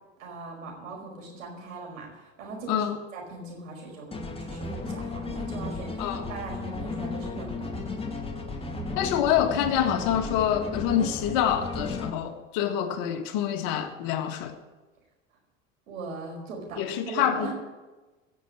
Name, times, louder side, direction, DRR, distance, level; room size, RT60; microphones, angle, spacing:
voice 1, 0.2-2.9 3.1-4.1 4.4-7.7 15.9-17.5, right 3 dB, 75° right, 0 dB, 4.9 m, -39 dB
sound 1, 4.1-12.1, left 3 dB, 15° left, 2.3 m, -34 dB
voice 2, 8.9-14.5 16.8-17.5, left 10 dB, 55° left, 7 dB, 1.6 m, -26 dB
17.5 x 6.9 x 8.6 m, 1.2 s
hypercardioid pair, 75°, 39 cm